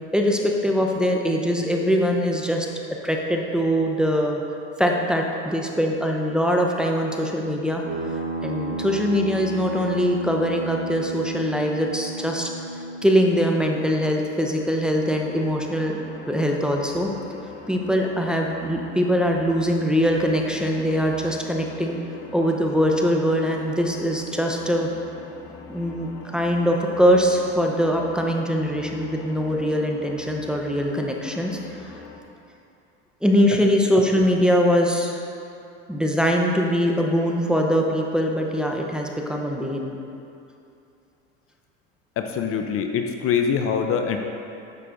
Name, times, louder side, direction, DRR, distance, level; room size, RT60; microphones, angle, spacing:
voice 1, 0.1-2.7 3.0-4.4 4.8-7.8 8.4-12.5 13.0-16.0 16.3-17.1 17.7-22.0 22.3-24.9 25.7-31.9 33.2-35.2 35.9-40.0, equal, 5° right, 0 dB, 0.7 m, -22 dB
sound 1, 7.8-13.6, right 1 dB, 35° right, 1.3 m, -32 dB
sound 2, 14.9-32.2, left 5 dB, 75° left, 0.8 m, -42 dB
voice 2, 42.2-44.2, left 7 dB, 45° left, 5 dB, 0.6 m, -24 dB
9.6 x 6.7 x 2.6 m, 2.7 s
hypercardioid pair, 90°, 32 cm